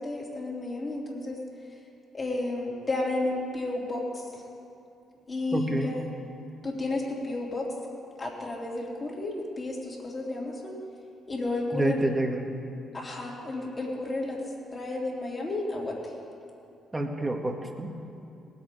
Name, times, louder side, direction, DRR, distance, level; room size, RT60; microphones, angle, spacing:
voice 1, 0.0-1.4 2.1-4.2 5.3-6.0 6.6-7.7 8.2-10.7 11.3-12.0 12.9-14.4 14.7-15.9, left 2 dB, 35° left, -3 dB, 3.4 m, -32 dB
voice 2, 5.5-5.9 11.7-12.5 16.9-17.9, right 2 dB, 20° right, 3 dB, 1.7 m, -28 dB
19.0 x 8.1 x 5.4 m, 2.6 s
supercardioid pair, 60°, 0 cm